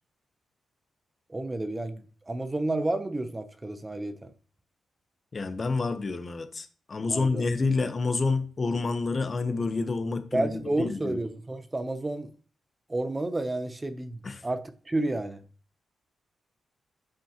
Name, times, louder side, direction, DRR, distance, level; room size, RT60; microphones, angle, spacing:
voice 1, 1.3-4.3 7.1-7.5 10.3-12.3 12.9-15.4, right 2 dB, 20° right, 0.7 m, -31 dB
voice 2, 5.3-11.2 14.2-14.4, left 3 dB, 40° left, 0.9 m, -28 dB
8.5 x 5.4 x 2.9 m
cardioid pair, 80°, 0 cm